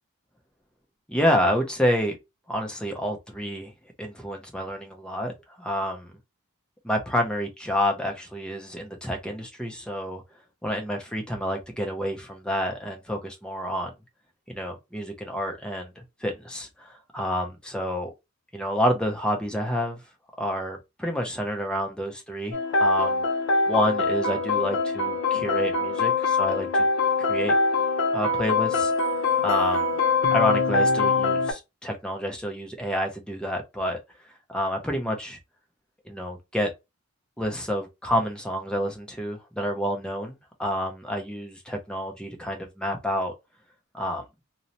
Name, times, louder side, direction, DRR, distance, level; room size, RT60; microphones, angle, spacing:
voice 1, 1.1-2.2 2.5-3.7 4.0-6.1 6.8-10.2 10.6-13.9 14.5-18.1 18.5-20.0 20.4-23.2 23.7-26.9 27.2-27.5 28.1-29.9 30.3-34.0 34.5-35.4 36.1-36.7 37.4-43.3 43.9-44.2, equal, 5° left, 0.4 m, -29 dB
sound 1, 22.5-31.5, left 4 dB, 60° left, 0.6 m, -23 dB
2.8 x 2.0 x 2.5 m
head